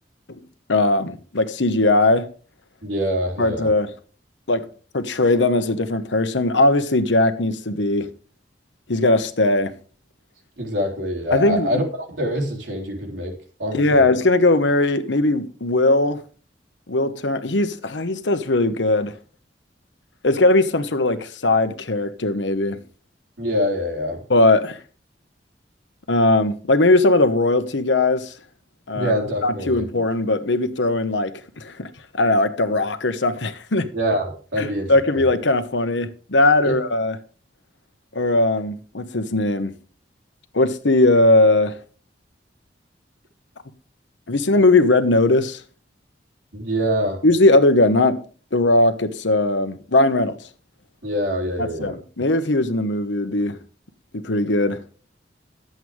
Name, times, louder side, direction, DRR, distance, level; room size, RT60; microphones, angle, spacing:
voice 1, 0.7-2.3 3.4-3.9 4.5-4.7 4.9-8.1 8.9-9.7 11.3-11.7 13.7-16.2 16.9-19.1 20.2-22.8 24.3-24.8 26.1-28.3 28.9-29.1 29.4-31.3 31.6-31.9 32.1-33.9 34.6-37.2 38.1-39.7 40.5-41.8 44.3-45.6 47.2-48.2 48.5-50.4 51.6-53.6 54.1-54.8, left 2 dB, 85° left, 1.1 m, -19 dB
voice 2, 2.8-3.7 10.6-14.1 23.4-24.2 28.9-29.9 33.9-35.3 36.6-36.8 46.5-47.2 51.0-52.0, equal, 80° right, 3.6 m, -25 dB
11.0 x 7.9 x 4.8 m
head